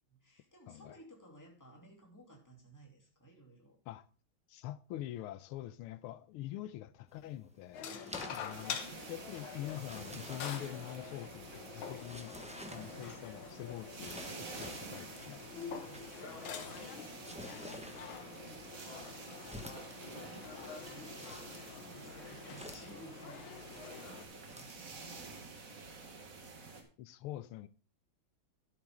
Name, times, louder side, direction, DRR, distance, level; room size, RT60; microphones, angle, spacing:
voice 1, 0.1-3.8 7.9-8.5 12.6-13.1 15.5-21.3 21.8-25.2, right 1 dB, 10° left, 2.7 m, -58 dB
voice 2, 0.7-1.0 3.9-4.0 4.5-8.0 8.3-8.8 9.1-15.5 27.0-27.7, left 13 dB, 85° left, 1.5 m, -45 dB
sound 1, 7.1-24.9, equal, 10° right, 0.4 m, -53 dB
sound 2, 7.7-24.3, left 7 dB, 70° left, 1.8 m, -47 dB
sound 3, 8.5-26.8, right 4 dB, 40° right, 1.8 m, -50 dB
12.5 x 7.4 x 3.6 m
omnidirectional pair, 2.4 m